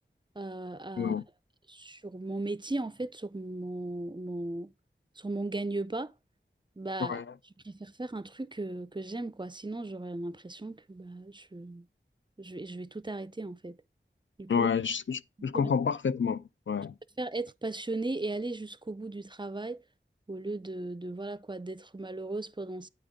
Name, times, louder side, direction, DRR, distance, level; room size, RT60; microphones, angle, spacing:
voice 1, 0.4-1.1 1.7-4.7 5.2-6.1 6.8-7.2 7.6-11.9 12.4-13.8 14.4-14.7 15.4-15.7 17.2-19.8 20.3-22.9, right 2 dB, 25° right, 0.4 m, -37 dB
voice 2, 7.0-7.3 14.5-17.0, left 6 dB, 70° left, 0.4 m, -29 dB
8.9 x 3.6 x 5.1 m
wide cardioid pair, 45°, 20 cm